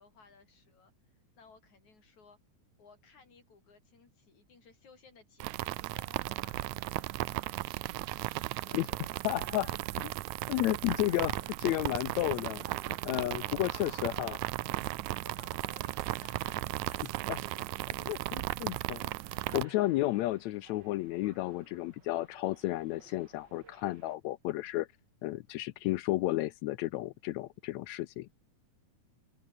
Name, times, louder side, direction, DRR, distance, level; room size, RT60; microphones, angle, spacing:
voice 1, 0.0-2.4 2.8-7.7 8.5-9.8 10.5-10.9 13.4-14.4 15.2-17.4, left 5 dB, 65° left, 6.6 m, -59 dB
sound 1, 5.4-19.6, right 19 dB, 80° right, 1.9 m, -36 dB
sound 2, 7.3-24.2, right 5 dB, 35° right, 2.7 m, -57 dB
voice 2, 9.2-9.7 10.5-14.4 17.3-17.4 18.1-19.1 19.5-24.9 25.2-28.3, left 17 dB, 80° left, 1.7 m, -32 dB
open air
omnidirectional pair, 3.6 m